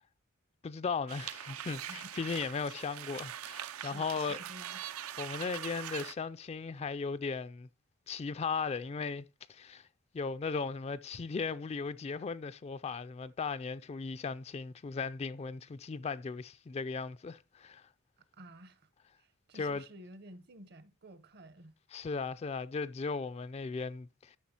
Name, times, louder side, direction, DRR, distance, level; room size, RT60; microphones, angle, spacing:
voice 1, 0.6-4.4 5.2-7.7 8.1-9.9 10.1-17.9 19.5-19.8 21.9-24.4, left 4 dB, 30° left, 0.3 m, -37 dB
sound 1, 1.1-6.1, right 10 dB, 90° right, 0.5 m, -42 dB
voice 2, 1.9-2.3 3.8-4.8 18.2-18.9 19.2-21.8, right 1 dB, 50° right, 0.8 m, -53 dB
12.5 x 6.0 x 2.8 m
head